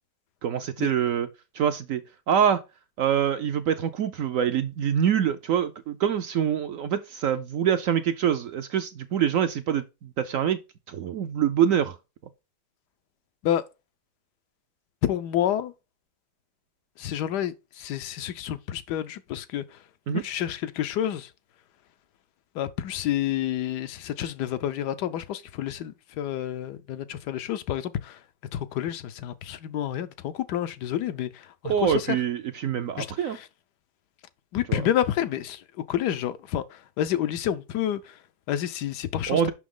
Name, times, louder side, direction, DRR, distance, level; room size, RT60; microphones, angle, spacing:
voice 1, 0.4-1.3 1.5-2.6 3.0-10.6 10.9-12.0 20.1-20.2 31.6-33.4 34.7-34.8 39.3-39.5, right 9 dB, 65° right, 0.8 m, -25 dB
voice 2, 15.0-15.7 17.0-19.9 20.1-21.3 22.5-28.2 28.5-32.2 33.0-33.5 34.5-39.5, left 11 dB, 80° left, 1.2 m, -29 dB
6.1 x 5.8 x 3.7 m
omnidirectional pair, 1.8 m